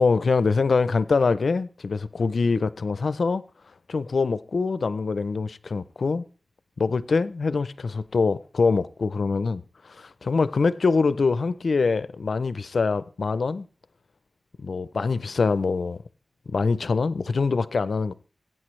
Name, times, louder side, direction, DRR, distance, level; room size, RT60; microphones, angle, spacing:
voice 1, 0.0-3.4 3.9-6.2 6.8-9.6 9.9-13.6 14.6-16.0 16.5-18.1, left 4 dB, 80° left, 0.5 m, -24 dB
21.5 x 9.0 x 3.2 m
wide cardioid pair, 70°, 0 cm